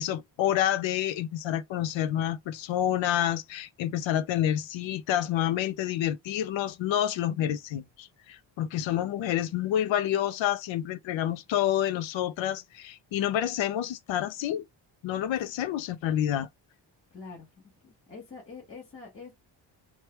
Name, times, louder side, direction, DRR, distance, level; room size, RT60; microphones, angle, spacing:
voice 1, 0.0-14.6 15.0-16.5, left 11 dB, 85° left, 0.6 m, -28 dB
voice 2, 17.1-17.5 17.8-19.3, left 4 dB, 30° left, 1.3 m, -45 dB
3.1 x 2.2 x 3.0 m
wide cardioid pair, 165°, 44 cm